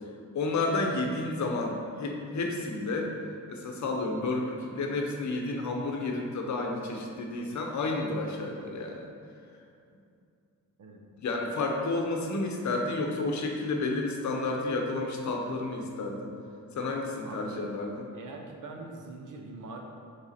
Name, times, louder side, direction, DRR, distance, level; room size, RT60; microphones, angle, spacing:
voice 1, 0.3-3.1 3.5-9.1 11.2-16.3 16.7-18.1, left 2 dB, 60° left, 1 dB, 0.8 m, -31 dB
voice 2, 17.2-17.5 18.1-19.8, right 3 dB, 65° right, 1 dB, 0.8 m, -43 dB
7.2 x 3.4 x 4.2 m, 2.5 s
wide cardioid pair, 165°, 33 cm